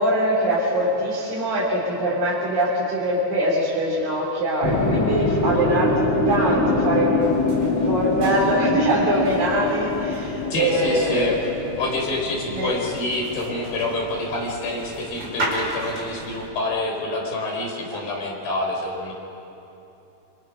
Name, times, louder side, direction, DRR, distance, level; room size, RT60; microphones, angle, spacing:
voice 1, 0.0-7.4 7.9-11.4 12.5-12.7 17.9-18.0, right 1 dB, 65° right, -6 dB, 5.2 m, -23 dB
sound 1, 4.6-14.8, left 2 dB, 40° left, 1.7 m, -24 dB
sound 2, 7.2-16.5, right 1 dB, 30° right, 4.4 m, -36 dB
voice 2, 10.5-11.4 11.8-19.1, left 2 dB, 70° left, -1 dB, 6.1 m, -27 dB
26.5 x 25.5 x 6.3 m, 2.9 s
omnidirectional pair, 4.3 m